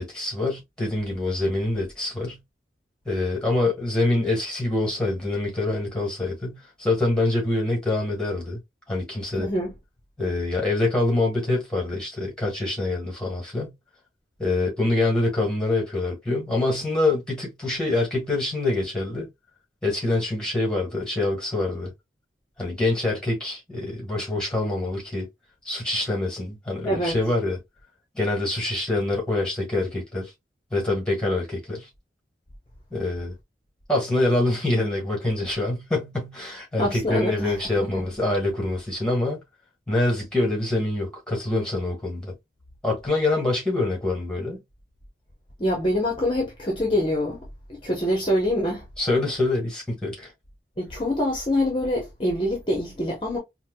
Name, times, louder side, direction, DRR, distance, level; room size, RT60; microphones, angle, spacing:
voice 1, 0.0-2.4 3.0-8.6 8.9-9.5 10.2-13.7 14.4-19.3 19.8-21.9 22.6-25.3 25.6-27.6 28.1-30.3 30.7-31.9 32.9-33.3 33.9-39.4 39.9-42.3 42.8-44.6 49.0-50.3, left 2 dB, 5° left, 1.5 m, -25 dB
voice 2, 9.4-9.7 26.8-27.2 36.8-38.0 45.6-47.4 47.7-48.9 50.8-53.4, left 1 dB, 30° left, 0.8 m, -25 dB
4.4 x 2.2 x 2.2 m
head